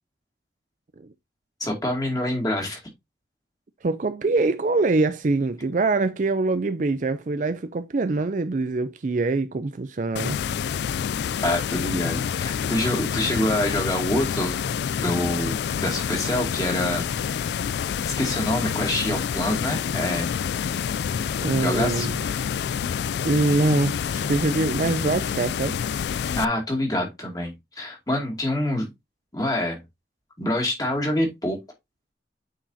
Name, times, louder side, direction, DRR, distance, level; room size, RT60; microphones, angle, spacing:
voice 1, 1.6-2.8 11.4-14.6 15.0-17.1 18.2-20.3 21.6-22.1 26.3-28.9 29.3-29.8 30.4-31.6, left 1 dB, 20° left, 2.3 m, -26 dB
voice 2, 3.8-10.4 21.4-22.2 23.2-25.8, right 3 dB, 45° right, 0.4 m, -24 dB
sound 1, 10.2-26.5, left 7 dB, 70° left, 0.3 m, -28 dB
8.8 x 4.8 x 2.7 m
head